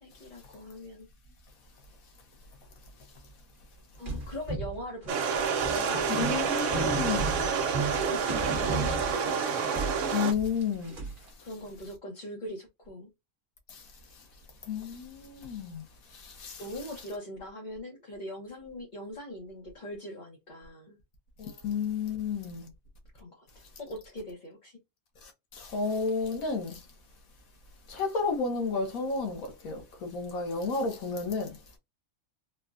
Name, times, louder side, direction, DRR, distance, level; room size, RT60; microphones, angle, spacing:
voice 1, 0.0-1.1 4.0-9.5 11.4-13.1 16.6-21.0 23.1-24.8, left 1 dB, 40° left, 0.9 m, -42 dB
sound 1, 4.1-9.5 9.7-11.3, right 3 dB, 45° right, 1.1 m, -34 dB
sound 2, 5.1-10.3, right 6 dB, 70° right, 0.9 m, -28 dB
voice 2, 6.1-7.3 10.1-11.0 13.7-13.8 14.7-15.8 16.1-16.6 21.4-22.7 25.2-26.8 27.9-31.6, left 4 dB, 85° left, 1.4 m, -32 dB
4.0 x 2.2 x 2.4 m
omnidirectional pair, 1.4 m